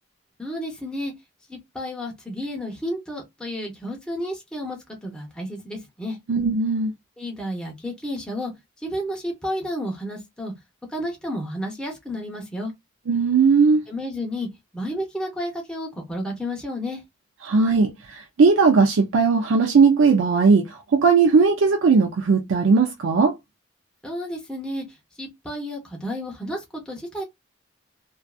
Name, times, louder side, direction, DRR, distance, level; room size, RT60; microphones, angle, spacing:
voice 1, 0.4-1.1 1.5-6.2 7.2-8.5 8.8-10.5 10.9-12.7 13.9-14.5 14.7-17.0 24.0-27.2, equal, 5° left, 0.7 m, -31 dB
voice 2, 6.3-6.9 13.1-13.8 17.4-23.3, right 4 dB, 75° right, 0.4 m, -18 dB
2.5 x 2.3 x 2.3 m
head